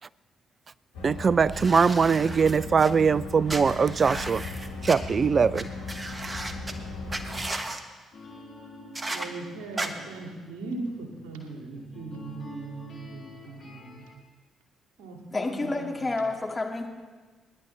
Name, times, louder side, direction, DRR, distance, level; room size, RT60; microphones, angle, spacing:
sound 1, 0.9-7.5, left 3 dB, 85° left, 2.6 m, -37 dB
voice 1, 1.0-4.4 4.8-5.7, right 5 dB, 40° right, 20 dB, 0.4 m, -22 dB
sound 2, 1.5-2.9 3.5-5.0 5.5-5.6 5.9-6.7 7.1-7.8 8.9-9.3 9.8-9.9, right 2 dB, 25° right, 1.4 m, -35 dB
sound 3, 8.1-14.1, left 3 dB, 50° left, 5.2 m, -48 dB
voice 2, 9.1-14.1 15.0-16.2, right 3 dB, 70° right, 1 dB, 2.6 m, -39 dB
voice 3, 15.3-16.9, left 2 dB, 25° left, 1 dB, 2.3 m, -29 dB
26.0 x 11.0 x 3.4 m, 1.4 s
figure-of-eight pair, 45°, 0 cm